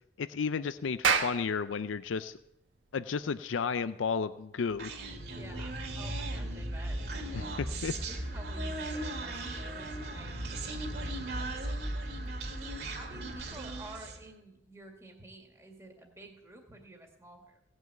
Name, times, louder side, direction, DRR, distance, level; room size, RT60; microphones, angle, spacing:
voice 1, 0.2-2.4 2.9-4.9 7.3-7.9, left 5 dB, 90° left, 12 dB, 0.5 m, -33 dB
Clapping, 0.8-5.7, right 6 dB, 90° right, 1.5 m, -34 dB
Human voice, 4.8-14.3, right 1 dB, 55° right, 2.3 m, -37 dB
voice 2, 5.3-7.0 7.9-10.4 10.8-11.7 12.8-17.6, right 2 dB, 15° right, 1 dB, 2.0 m, -51 dB
17.5 x 6.3 x 8.8 m, 0.86 s
head